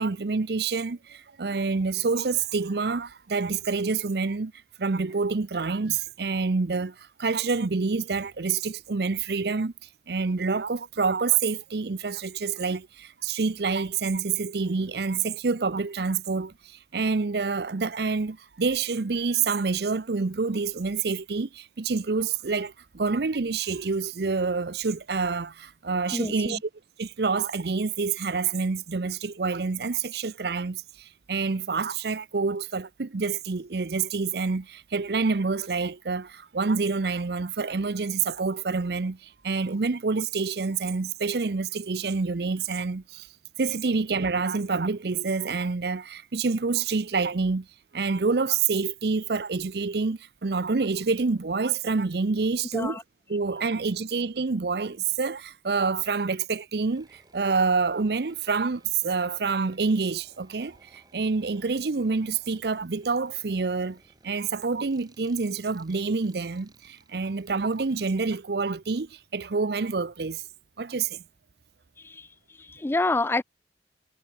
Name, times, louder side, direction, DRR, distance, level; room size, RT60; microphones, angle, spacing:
voice 1, 0.0-4.5 4.8-9.7 10.1-26.7 27.0-43.3 43.6-47.7 47.9-53.0 53.3-64.0 64.2-70.4 70.8-71.2, right 4 dB, 65° right, 0.6 m, -27 dB
voice 2, 26.1-26.6 52.7-53.0 72.0-72.3 72.6-73.4, left 2 dB, 15° left, 0.3 m, -27 dB
sound 1, 56.9-68.0, right 2 dB, 25° right, 6.6 m, -60 dB
head